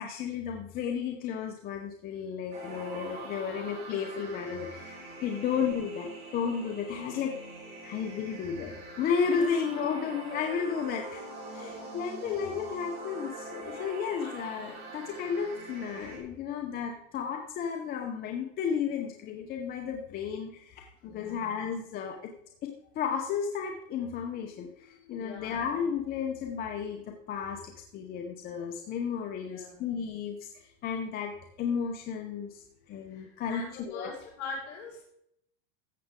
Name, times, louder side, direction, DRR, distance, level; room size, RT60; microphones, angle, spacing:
voice 1, 0.0-5.0 5.2-7.4 7.8-22.3 22.6-34.1, left 7 dB, 25° left, 3 dB, 0.8 m, -33 dB
sound 1, 2.5-16.2, right 2 dB, 25° right, 3.3 m, -43 dB
voice 2, 11.6-12.0 14.2-14.4 21.0-21.5 25.2-25.6 29.3-29.8 33.1-35.0, left 4 dB, 55° left, -3 dB, 4.6 m, -43 dB
14.0 x 7.6 x 3.7 m, 0.73 s
supercardioid pair, 155°, 38 cm